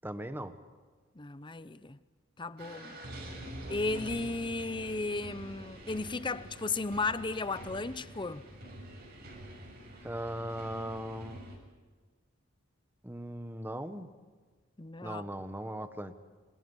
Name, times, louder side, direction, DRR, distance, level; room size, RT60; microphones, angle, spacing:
voice 1, 0.0-0.5 10.0-11.4 13.0-14.1 15.0-16.1, right 1 dB, 10° right, 1.3 m, -38 dB
voice 2, 1.2-2.0 2.4-3.0 3.7-8.4 14.8-15.2, left 3 dB, 25° left, 0.8 m, -35 dB
sound 1, 2.6-11.6, right 1 dB, 55° right, 7.5 m, -46 dB
28.5 x 26.5 x 5.6 m
head